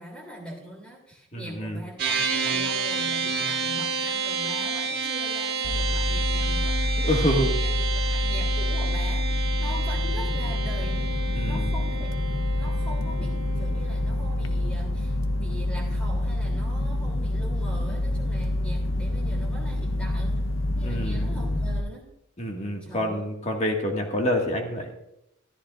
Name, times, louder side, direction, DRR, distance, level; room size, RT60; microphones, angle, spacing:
voice 1, 0.0-11.1 11.4-20.5 20.7-22.1 22.8-23.3, equal, 5° left, -1 dB, 3.0 m, -42 dB
voice 2, 1.3-1.8 7.0-7.6 11.3-11.7 20.8-21.3 22.4-24.9, equal, 35° left, 1 dB, 1.8 m, -27 dB
sound 1, 2.0-15.5, right 4 dB, 50° right, 1.7 m, -31 dB
sound 2, 5.6-21.8, left 1 dB, 80° left, 0.9 m, -27 dB
14.0 x 13.5 x 2.5 m, 0.81 s
head